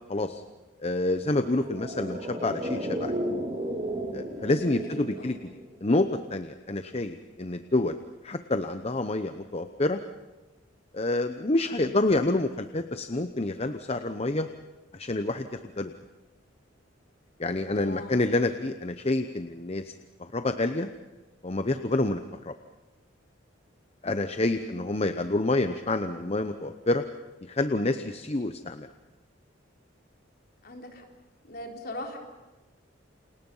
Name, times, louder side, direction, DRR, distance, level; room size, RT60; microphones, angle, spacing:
voice 1, 0.1-0.4 0.8-3.1 4.1-5.4 5.8-8.0 8.2-10.0 10.9-14.5 14.9-15.5 15.8-15.9 17.4-19.9 20.2-20.9 21.4-22.5 24.0-27.0 27.5-28.9, left 2 dB, 30° left, 8 dB, 0.8 m, -28 dB
sound 1, 1.5-6.0 6.3-6.4, right 1 dB, 30° right, 2.8 m, -34 dB
voice 2, 4.9-5.4 17.9-18.2 24.5-24.8 30.6-31.0 31.4-32.2, left 1 dB, 50° left, 1 dB, 4.3 m, -40 dB
29.0 x 27.5 x 5.6 m, 1.1 s
head